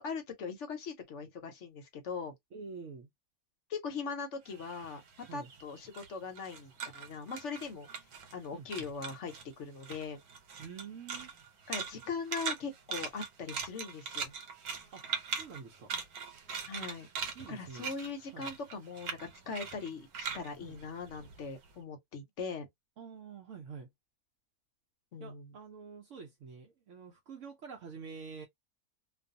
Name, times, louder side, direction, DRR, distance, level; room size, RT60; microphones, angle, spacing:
voice 1, 0.0-2.3 3.7-5.0 5.3-7.9 8.3-10.2 11.7-14.3 16.7-17.1 17.5-22.7 25.1-25.5, left 5 dB, 60° left, 0.9 m, -40 dB
voice 2, 2.5-3.1 5.3-5.5 8.5-8.9 10.6-11.3 14.9-15.0 15.4-15.9 17.3-17.9 18.3-18.6 20.6-20.8 23.0-23.9 25.2-28.5, right 5 dB, 65° right, 0.9 m, -47 dB
sound 1, 4.5-8.5 8.7-9.5 9.8-21.6, right 6 dB, 85° right, 1.2 m, -41 dB
2.5 x 2.3 x 2.5 m
omnidirectional pair, 1.6 m